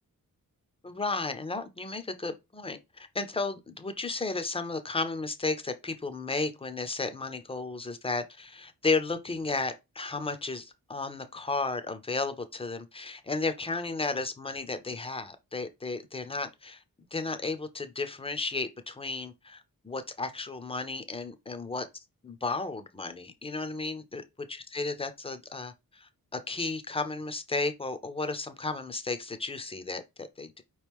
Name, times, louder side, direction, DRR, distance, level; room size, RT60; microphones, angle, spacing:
voice 1, 0.8-16.8 17.1-21.9 22.2-24.2 24.7-30.6, left 3 dB, 15° left, 0.6 m, -33 dB
4.9 x 3.1 x 3.4 m
wide cardioid pair, 160°, 35 cm